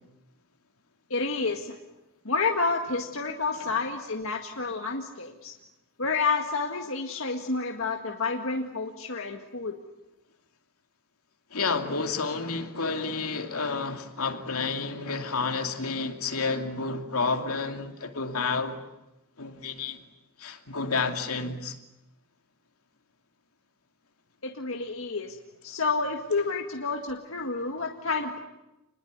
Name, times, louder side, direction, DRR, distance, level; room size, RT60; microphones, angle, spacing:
voice 1, 1.1-1.8 2.3-5.5 6.0-9.7 24.4-25.4 25.6-28.4, left 4 dB, 60° left, 2 dB, 1.9 m, -29 dB
voice 2, 11.5-18.8 19.4-20.0 20.4-21.8, left 4 dB, 80° left, 5 dB, 2.7 m, -30 dB
28.5 x 21.0 x 9.5 m, 0.96 s
head